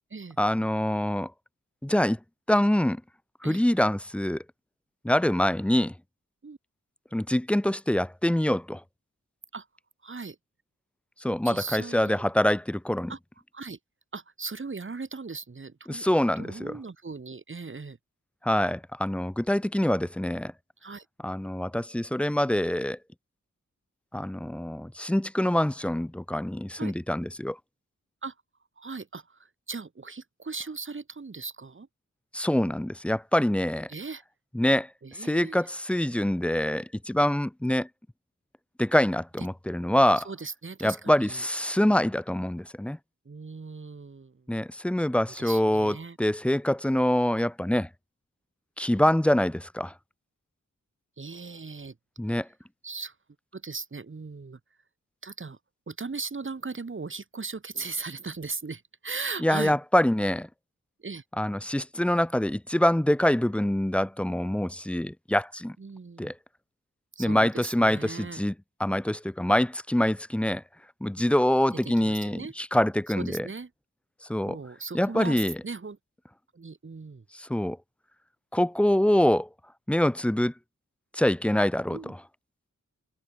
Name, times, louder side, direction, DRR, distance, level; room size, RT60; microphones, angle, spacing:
voice 1, 0.4-1.3 1.8-2.2 2.5-3.0 3.4-4.4 5.0-5.9 7.1-8.8 11.2-13.1 15.9-16.8 18.4-20.5 21.2-23.0 24.1-27.6 32.3-33.9 34.5-34.9 35.2-37.9 38.8-40.2 40.8-43.0 44.5-47.9 48.8-49.9 52.2-52.5 59.4-60.5 61.4-65.8 66.2-66.3 67.2-68.5 68.8-70.6 71.0-73.5 74.3-74.6 74.9-75.6 77.4-77.8 78.5-79.5 79.9-80.5 81.1-82.2, left 1 dB, 5° left, 0.4 m, -25 dB
voice 2, 10.0-10.4 11.4-12.2 13.1-13.2 13.5-13.8 14.1-16.1 16.4-18.0 20.8-21.1 26.8-26.9 28.2-28.3 28.8-31.9 33.9-34.2 35.0-35.7 39.4-39.5 40.2-41.5 43.3-44.5 45.3-46.2 51.2-52.0 52.8-53.2 53.5-54.6 55.2-55.6 55.9-59.8 61.0-61.2 65.8-66.3 67.2-68.4 72.0-72.5 73.1-73.7 74.5-76.0 76.5-77.2 81.9-82.1, right 4 dB, 40° right, 1.8 m, -38 dB
wide cardioid pair, 115°, 32 cm